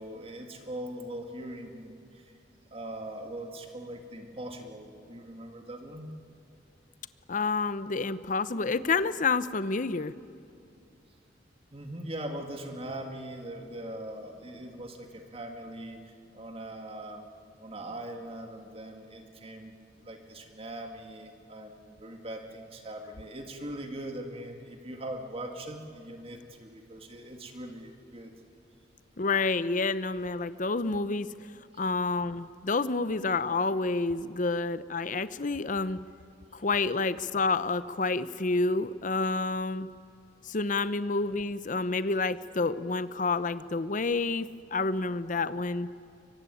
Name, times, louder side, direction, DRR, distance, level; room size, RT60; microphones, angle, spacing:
voice 1, 0.0-2.3 2.7-6.1 11.7-17.3 17.6-19.7 20.0-28.3, right 1 dB, 30° right, 4 dB, 2.1 m, -41 dB
voice 2, 7.3-10.1 29.2-31.3 31.8-36.0 36.5-39.9 40.4-45.9, left 3 dB, 45° left, 14 dB, 0.7 m, -29 dB
23.5 x 23.0 x 9.9 m, 2.4 s
head